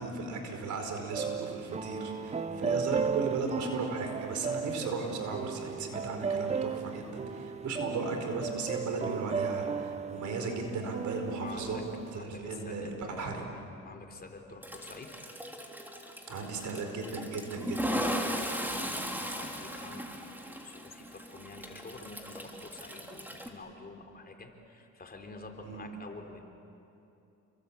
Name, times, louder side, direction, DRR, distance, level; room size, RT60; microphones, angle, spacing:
voice 1, 0.0-11.8 12.1-13.4 16.3-18.0 25.6-25.9, right 3 dB, 70° right, 4 dB, 4.7 m, -36 dB
sound 1, 1.1-12.2, right 6 dB, 20° right, 0.6 m, -35 dB
voice 2, 11.4-11.8 12.1-13.6 13.9-15.1 17.9-26.4, left 3 dB, 30° left, 3 dB, 3.7 m, -47 dB
Toilet flush, 14.6-23.5, equal, 5° right, 3.3 m, -37 dB
29.5 x 23.0 x 8.7 m, 2.8 s
cardioid pair, 90°, 30 cm